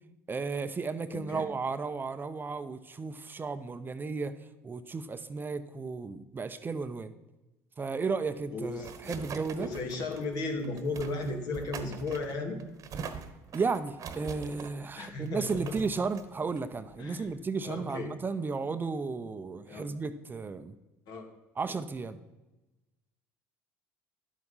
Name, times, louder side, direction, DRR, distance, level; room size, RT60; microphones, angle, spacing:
voice 1, 0.3-4.3 4.6-7.1 7.8-9.7 13.5-20.8 21.6-22.2, right 4 dB, 25° right, 11 dB, 0.7 m, -34 dB
voice 2, 1.1-1.4 8.5-9.2 9.6-12.6 15.0-15.8 17.0-17.3 17.7-18.1 19.7-19.8 21.1-21.2, left 3 dB, 60° left, 3 dB, 2.3 m, -35 dB
sound 1, 8.2-17.5, right 6 dB, 50° right, 1.2 m, -44 dB
11.0 x 7.8 x 5.6 m, 1.1 s
hypercardioid pair, 75°, 7 cm